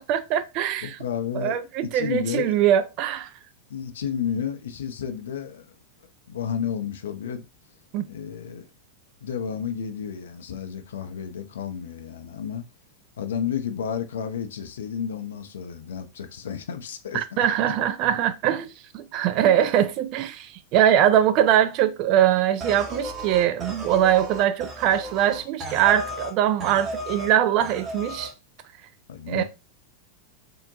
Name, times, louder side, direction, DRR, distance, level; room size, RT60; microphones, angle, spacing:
voice 1, 0.0-1.0 1.3-3.3 7.9-8.1 17.1-18.7 18.9-28.3 29.3-29.4, right 10 dB, 40° right, 0.4 m, -22 dB
voice 2, 0.8-2.6 3.7-5.7 6.3-7.5 8.1-8.7 9.2-12.7 13.2-17.5 29.1-29.4, left 8 dB, 65° left, 0.4 m, -31 dB
sound 1, 22.6-26.3 26.6-27.3 27.6-28.3, right 1 dB, 25° right, 0.8 m, -34 dB
3.6 x 2.1 x 2.5 m
figure-of-eight pair, 90°, 0 cm